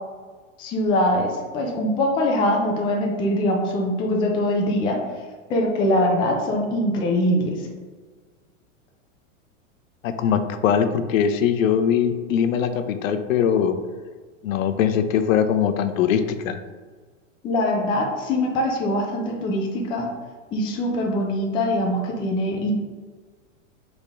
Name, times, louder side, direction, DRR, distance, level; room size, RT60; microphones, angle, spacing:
voice 1, 0.6-5.0 5.5-7.6 17.4-20.1 20.5-22.7, left 1 dB, 15° left, 0 dB, 0.3 m, -23 dB
voice 2, 10.0-13.8 14.4-16.6, left 8 dB, 85° left, 10 dB, 0.5 m, -21 dB
4.1 x 3.4 x 3.5 m, 1.4 s
supercardioid pair, 135°, 39 cm